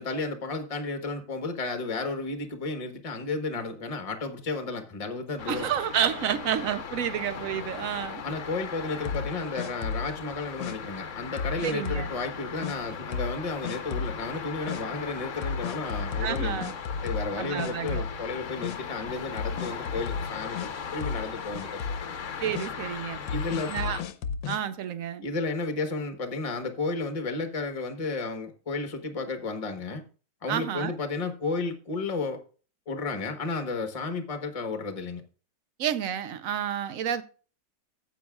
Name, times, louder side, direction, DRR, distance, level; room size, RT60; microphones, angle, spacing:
voice 1, 0.0-5.7 8.2-16.6 17.0-21.8 22.1-22.2 23.3-23.7 25.2-30.0 30.4-32.4 32.9-35.2, left 3 dB, 25° left, 1.0 m, -33 dB
sound 1, 5.4-24.0, left 6 dB, 50° left, 1.1 m, -38 dB
voice 2, 5.5-8.2 11.6-12.1 16.2-16.7 17.4-18.0 22.4-23.2 23.7-24.0 24.5-25.2 30.5-31.0 35.8-37.2, right 9 dB, 65° right, 0.9 m, -30 dB
sound 2, 9.0-10.2 10.6-10.7 11.4-12.1 12.6-12.8 13.1-13.4 13.6-14.2 14.7-14.8 15.4-17.3 17.6-18.3 18.6-18.8 19.4-20.7 21.0-21.3 21.5-22.1 22.5-22.7 23.3-24.6, left 5 dB, 80° left, 1.5 m, -33 dB
14.5 x 8.3 x 2.3 m
omnidirectional pair, 2.0 m